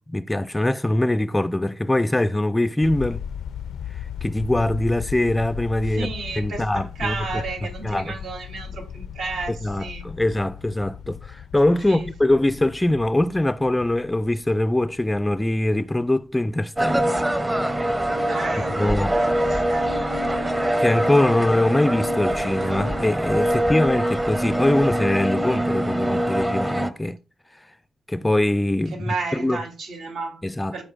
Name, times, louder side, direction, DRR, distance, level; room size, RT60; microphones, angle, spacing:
voice 1, 0.1-3.2 4.2-6.1 6.4-7.1 7.8-8.1 9.5-17.2 18.8-19.2 20.8-27.2 28.1-29.6 30.4-30.8, left 1 dB, 10° left, 0.3 m, -22 dB
sound 1, 2.8-16.1, left 8 dB, 75° left, 0.4 m, -37 dB
voice 2, 5.8-10.1 11.9-12.1 18.3-21.0 28.9-30.4 30.7-30.8, right 4 dB, 80° right, 3.2 m, -33 dB
sound 2, 16.8-26.9, right 1 dB, 15° right, 0.7 m, -23 dB
15.5 x 5.1 x 2.4 m
cardioid pair, 125°, 0 cm